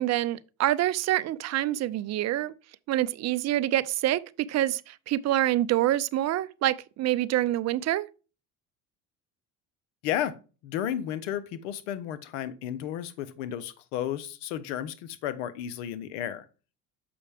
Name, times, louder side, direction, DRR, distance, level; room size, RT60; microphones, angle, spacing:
voice 1, 0.0-2.5 2.9-8.1, right 14 dB, 50° right, 0.5 m, -26 dB
voice 2, 10.0-10.3 10.6-16.4, left 10 dB, 85° left, 0.8 m, -33 dB
6.9 x 5.5 x 3.4 m
supercardioid pair, 75°, 35 cm